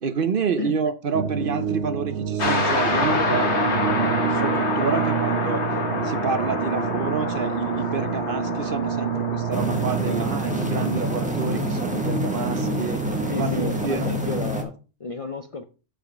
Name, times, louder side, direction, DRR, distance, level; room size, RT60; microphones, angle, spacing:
voice 1, 0.0-5.6 6.0-13.0 13.3-14.1, right 5 dB, 55° right, 11 dB, 0.8 m, -28 dB
sound 1, 1.1-13.9, right 9 dB, 85° right, 1.1 m, -29 dB
sound 2, 2.4-14.4, left 3 dB, 70° left, 1.8 m, -28 dB
sound 3, 9.5-14.6, equal, 5° right, 1.2 m, -27 dB
voice 2, 13.3-15.6, left 3 dB, 45° left, 7 dB, 0.5 m, -32 dB
7.5 x 5.0 x 5.1 m, 0.34 s
omnidirectional pair, 1.2 m